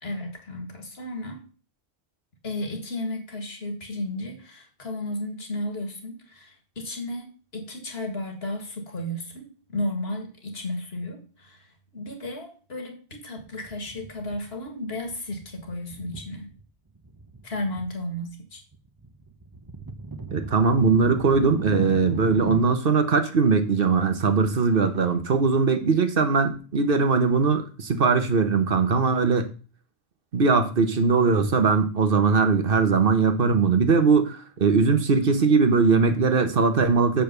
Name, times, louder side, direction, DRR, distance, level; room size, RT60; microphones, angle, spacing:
voice 1, 0.0-1.4 2.4-11.7 11.9-16.5 17.4-18.6, left 1 dB, 60° left, 5 dB, 2.0 m, -33 dB
sound 1, 13.4-14.7 15.0-16.6 16.9-17.9 18.1-22.6, right 3 dB, 20° right, 0.8 m, -38 dB
voice 2, 20.3-29.5 30.3-37.2, right 4 dB, 55° right, 8 dB, 1.2 m, -20 dB
6.9 x 5.3 x 6.6 m, 0.37 s
omnidirectional pair, 1.2 m